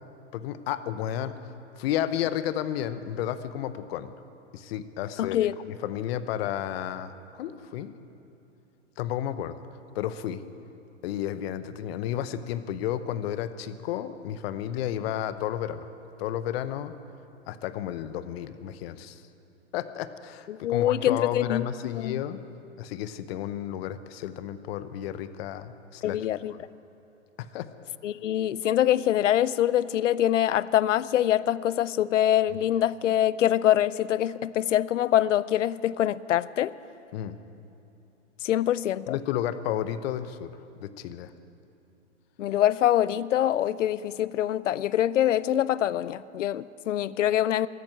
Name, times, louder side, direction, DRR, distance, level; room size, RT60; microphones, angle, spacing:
voice 1, 0.3-1.3 1.8-4.1 4.5-5.5 5.8-7.1 7.4-7.9 9.0-9.5 9.9-10.4 11.0-15.9 16.2-16.9 17.5-19.2 19.7-22.4 22.8-26.2 27.4-27.7 37.1-37.4 39.1-40.5 40.8-41.3, left 11 dB, 55° left, 0.9 m, -32 dB
voice 2, 5.2-5.5 20.5-22.2 26.0-26.5 28.0-36.7 38.4-39.2 42.4-47.7, left 12 dB, 90° left, 0.5 m, -24 dB
13.5 x 9.4 x 9.8 m
hypercardioid pair, 115°, 36 cm